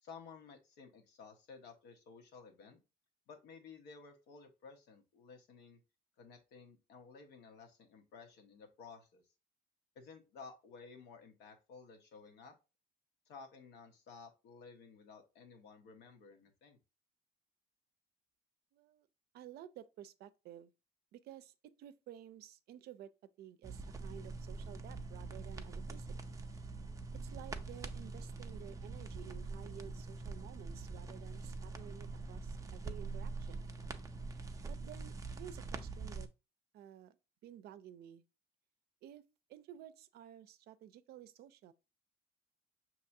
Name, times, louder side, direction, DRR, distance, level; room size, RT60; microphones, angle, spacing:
voice 1, 0.0-2.8 3.3-5.8 6.2-9.2 9.9-12.5 13.3-16.8, left 5 dB, 90° left, 1.1 m, -55 dB
voice 2, 18.7-19.1 19.3-20.7 21.1-23.1 23.4-26.1 27.1-33.6 34.6-36.3 36.7-37.2 37.4-38.2 39.0-39.2 39.5-41.7, right 11 dB, 70° right, 0.5 m, -53 dB
sound 1, 23.6-36.3, right 3 dB, 20° right, 0.5 m, -44 dB
5.7 x 2.9 x 2.6 m
cardioid pair, 110°, 17 cm